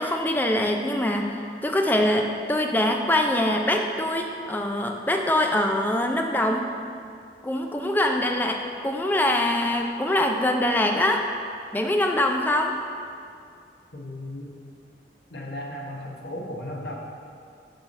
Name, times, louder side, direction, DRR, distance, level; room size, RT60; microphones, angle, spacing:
voice 1, 0.0-1.4 1.6-6.7 7.4-11.2 11.7-12.8, left 1 dB, 10° left, 2 dB, 0.4 m, -23 dB
voice 2, 13.9-14.5 15.3-16.9, left 1 dB, 75° left, -1 dB, 1.1 m, -35 dB
6.8 x 5.8 x 4.2 m, 2.4 s
head